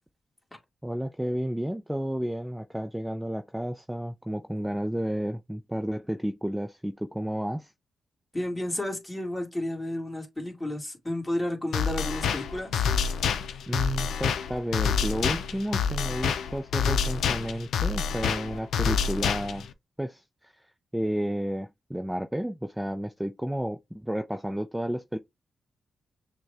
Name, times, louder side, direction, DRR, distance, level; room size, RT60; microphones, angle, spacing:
voice 1, 0.8-7.7 13.7-19.7 20.0-20.5 20.9-25.2, equal, 5° right, 0.4 m, -31 dB
voice 2, 8.3-12.8, left 1 dB, 20° left, 2.0 m, -32 dB
sound 1, 11.7-19.7, left 6 dB, 90° left, 0.5 m, -27 dB
6.2 x 2.2 x 3.3 m
cardioid pair, 70°, 0 cm